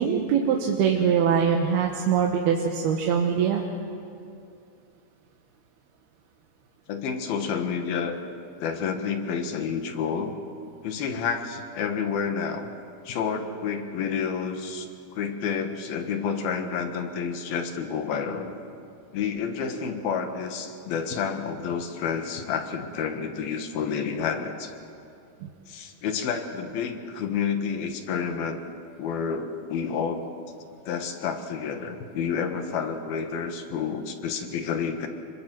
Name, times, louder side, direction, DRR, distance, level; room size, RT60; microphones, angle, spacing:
voice 1, 0.0-3.6 14.7-14.9 25.4-25.5, right 7 dB, 90° right, 1 dB, 3.3 m, -23 dB
voice 2, 6.9-8.2 8.6-10.3 10.8-12.7 13.1-14.9 15.1-18.5 19.1-24.7 25.7-28.6 29.0-30.3 30.9-35.1, left 6 dB, 80° left, 6 dB, 3.4 m, -29 dB
26.0 x 23.5 x 7.6 m, 2.5 s
omnidirectional pair, 4.4 m